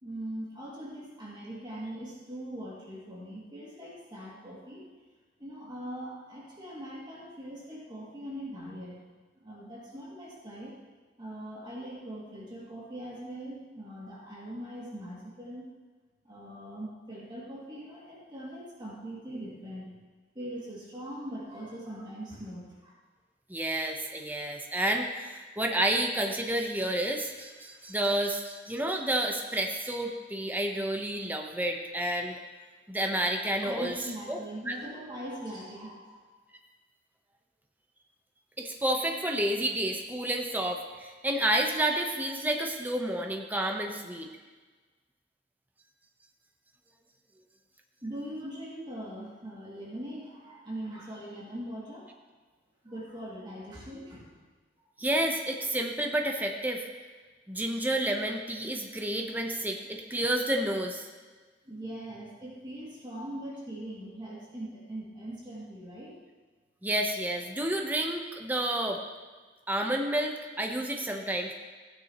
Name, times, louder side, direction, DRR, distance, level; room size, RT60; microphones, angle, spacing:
voice 1, 0.0-4.8 5.4-9.0 9.4-10.8 11.2-15.7 16.2-19.9 20.3-22.9 33.6-36.2 48.0-52.1 52.8-54.4 60.1-60.2 61.6-66.2, right 1 dB, 25° right, -7 dB, 2.4 m, -41 dB
voice 2, 23.5-32.3 32.9-33.9 34.3-34.4 34.7-34.8 38.6-44.3 55.0-56.9 57.5-61.1 66.8-69.0 69.7-71.5, right 1 dB, 10° right, 2 dB, 0.8 m, -30 dB
15.5 x 9.6 x 3.0 m, 1.4 s
head